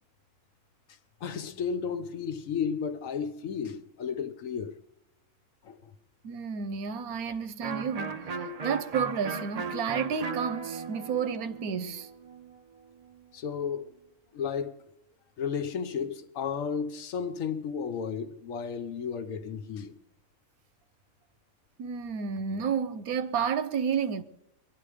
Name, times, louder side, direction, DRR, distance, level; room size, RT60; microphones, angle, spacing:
voice 1, 1.2-4.8 5.6-5.9 13.3-13.9 14.3-14.8 15.4-20.0, left 6 dB, 70° left, 1.2 m, -33 dB
voice 2, 6.2-8.2 8.6-12.1 21.8-24.2, right 6 dB, 85° right, 1.2 m, -31 dB
Electric guitar, 7.6-13.2, right 5 dB, 65° right, 0.4 m, -37 dB
23.5 x 10.5 x 5.0 m
omnidirectional pair, 1.5 m